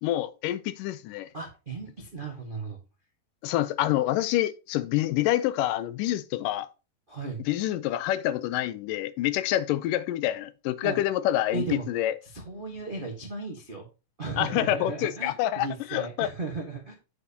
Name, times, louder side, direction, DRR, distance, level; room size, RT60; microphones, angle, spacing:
voice 1, 0.0-1.3 3.4-6.7 7.5-12.1 14.4-16.3, left 13 dB, 90° left, 2.3 m, -27 dB
voice 2, 1.3-2.8 7.1-7.4 10.8-11.0 11.5-11.8 12.2-13.9 14.2-16.9, right 3 dB, 65° right, 0.5 m, -35 dB
8.3 x 7.6 x 2.8 m
omnidirectional pair, 3.7 m